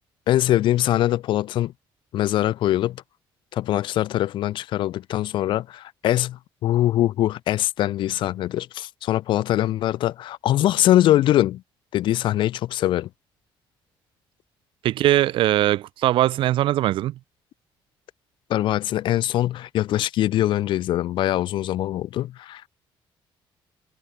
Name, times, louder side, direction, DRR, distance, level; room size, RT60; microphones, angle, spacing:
voice 1, 0.3-1.7 2.1-3.0 3.5-11.6 11.9-13.1 18.5-22.7, left 13 dB, 65° left, 0.7 m, -22 dB
voice 2, 14.8-17.1, right 14 dB, 65° right, 1.1 m, -20 dB
cardioid pair, 155°, 9 cm